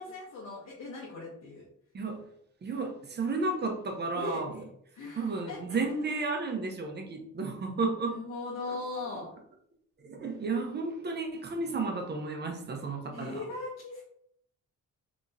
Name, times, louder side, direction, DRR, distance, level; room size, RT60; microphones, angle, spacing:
voice 1, 0.0-1.7 4.2-4.4 4.9-5.6 7.7-9.3 13.1-14.0, left 3 dB, 60° left, -4 dB, 1.1 m, -39 dB
voice 2, 2.6-4.6 5.2-8.2 8.7-8.8 10.0-13.4, right 3 dB, 35° right, 4 dB, 0.7 m, -33 dB
3.5 x 3.1 x 2.7 m, 0.69 s
cardioid pair, 90°, 30 cm